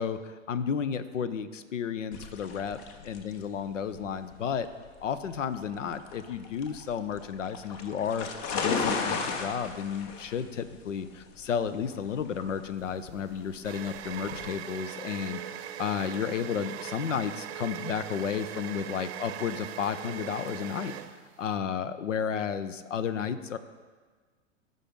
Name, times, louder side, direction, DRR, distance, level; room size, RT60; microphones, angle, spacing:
voice 1, 0.0-2.8 3.0-4.7 5.0-15.4 15.8-20.9 21.4-23.6, left 7 dB, 75° left, 13 dB, 0.7 m, -32 dB
sound 1, 2.1-14.5, left 5 dB, 40° left, 0.9 m, -36 dB
sound 2, 12.8-21.5, right 10 dB, 55° right, 0.7 m, -40 dB
15.0 x 5.5 x 3.7 m, 1.4 s
figure-of-eight pair, 95°, 38 cm